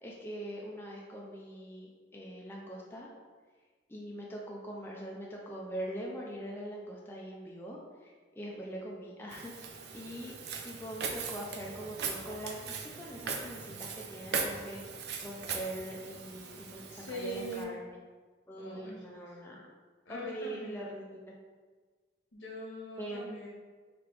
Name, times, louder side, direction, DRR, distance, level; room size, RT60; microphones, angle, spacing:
voice 1, 0.0-3.1 3.9-10.3 10.6-18.0 18.5-19.7 20.1-21.3 23.0-23.2, right 1 dB, 10° left, -3 dB, 0.4 m, -43 dB
Walk footsteps, 9.3-17.6, right 5 dB, 55° right, 0.4 m, -40 dB
voice 2, 16.9-17.8 18.6-19.4 20.0-21.0 22.3-23.5, equal, 80° left, -3 dB, 1.2 m, -42 dB
3.3 x 3.0 x 4.7 m, 1.5 s
head